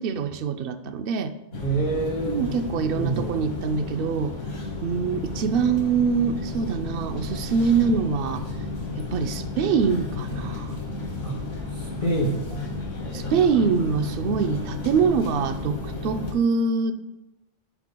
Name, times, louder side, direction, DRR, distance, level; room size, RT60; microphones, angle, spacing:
voice 1, 0.0-1.3 2.3-4.3 4.8-8.4 9.0-10.8 12.5-12.6 13.1-16.9, right 5 dB, 60° right, 9 dB, 0.6 m, -24 dB
sound 1, 1.5-16.3, left 3 dB, 90° left, 1.6 m, -32 dB
voice 2, 1.6-2.5 2.9-3.5 11.2-11.4 11.7-12.4, right 2 dB, 35° left, -6 dB, 1.7 m, -27 dB
11.0 x 5.6 x 2.2 m, 0.96 s
omnidirectional pair, 1.2 m